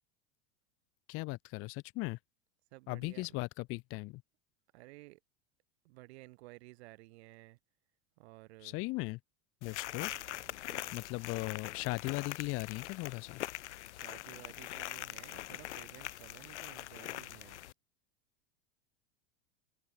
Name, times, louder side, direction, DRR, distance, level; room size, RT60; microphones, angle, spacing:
voice 1, 1.1-2.2 2.9-4.2 8.6-9.2 9.6-10.1 10.9-13.4, left 23 dB, 40° left, 0.5 m, -38 dB
voice 2, 2.7-3.4 4.7-5.2 5.8-7.6 8.2-8.8 10.0-11.0 13.9-17.6, right 22 dB, 70° right, 6.2 m, -55 dB
sound 1, 9.6-17.7, left 15 dB, 85° left, 1.2 m, -43 dB
open air
supercardioid pair, 115°, 34 cm